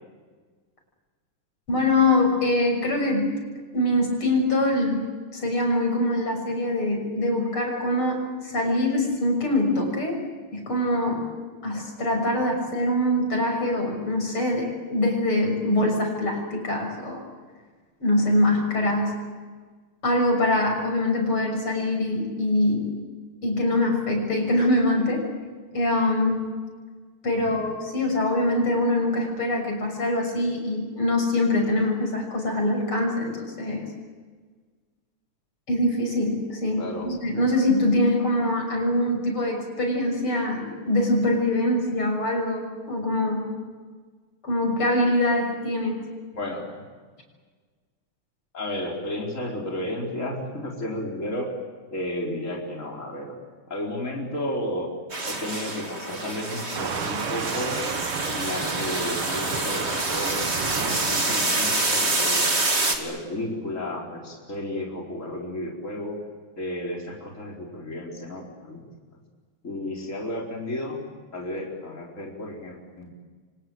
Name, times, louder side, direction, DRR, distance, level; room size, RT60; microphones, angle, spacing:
voice 1, 1.7-3.3 3.7-5.1 5.3-10.2 10.5-11.3 11.6-17.2 18.0-19.1 20.0-23.0 23.4-25.3 25.7-26.5 27.2-33.9 35.7-43.5 44.4-46.0, left 1 dB, 85° left, 2 dB, 7.5 m, -24 dB
voice 2, 36.8-37.1 46.3-46.6 48.5-51.5 51.9-53.3 53.7-54.9 55.2-57.8 58.2-62.4 62.9-66.2 66.6-68.8 69.6-71.0 71.3-73.1, left 1 dB, 35° left, -1 dB, 4.8 m, -32 dB
sound 1, 55.1-63.0, right 2 dB, 30° right, 3.1 m, -27 dB
Waves surf, 56.7-61.8, right 6 dB, 75° right, 2.4 m, -32 dB
29.5 x 25.5 x 7.9 m, 1.5 s
omnidirectional pair, 2.3 m